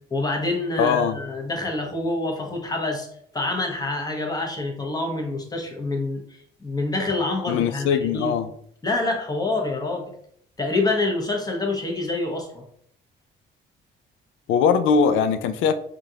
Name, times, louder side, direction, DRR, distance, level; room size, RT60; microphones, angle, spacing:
voice 1, 0.1-3.1 3.3-8.3 8.8-10.1 10.6-12.6, left 2 dB, 20° left, 1 dB, 1.0 m, -26 dB
voice 2, 0.8-1.2 7.5-8.5 14.5-15.7, left 6 dB, 90° left, 10 dB, 0.4 m, -21 dB
4.9 x 2.5 x 2.8 m, 0.66 s
cardioid pair, 90°, 20 cm